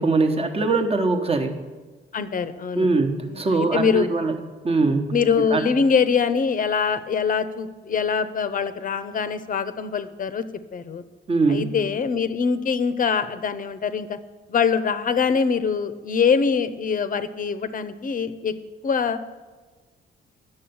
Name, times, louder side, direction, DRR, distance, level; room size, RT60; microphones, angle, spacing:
voice 1, 0.0-1.5 2.7-4.4 4.6-5.1 5.5-5.6 11.3-11.8, right 3 dB, 30° right, 5 dB, 1.1 m, -22 dB
voice 2, 2.1-2.9 3.2-4.1 5.1-10.4 10.7-11.0 11.5-14.2 14.5-18.5 18.8-19.2, left 6 dB, 45° left, 12 dB, 0.7 m, -23 dB
8.6 x 6.7 x 7.0 m, 1.3 s
cardioid pair, 90°, 20 cm